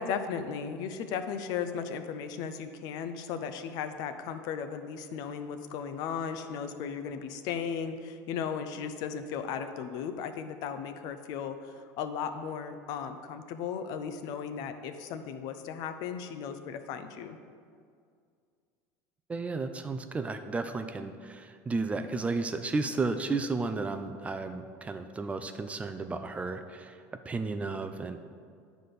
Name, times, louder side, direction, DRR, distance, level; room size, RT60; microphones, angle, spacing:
voice 1, 0.0-17.4, left 7 dB, 60° left, 9 dB, 0.6 m, -36 dB
voice 2, 19.3-28.2, right 3 dB, 20° right, 8 dB, 0.4 m, -33 dB
9.4 x 4.1 x 6.7 m, 2.2 s
supercardioid pair, 125°, 7 cm